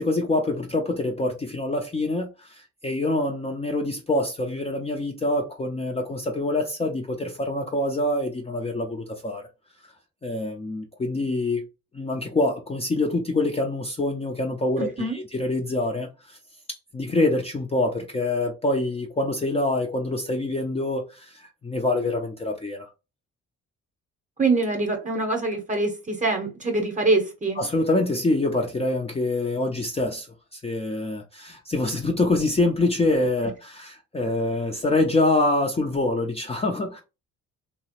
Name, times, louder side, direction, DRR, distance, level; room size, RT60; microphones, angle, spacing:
voice 1, 0.0-9.4 10.2-11.6 11.9-16.4 16.9-22.9 27.6-30.3 30.5-37.0, left 2 dB, 20° left, 0.5 m, -25 dB
voice 2, 14.8-15.2 24.4-27.6, right 3 dB, 25° right, 0.8 m, -24 dB
2.9 x 2.0 x 2.9 m
cardioid pair, 90°, 30 cm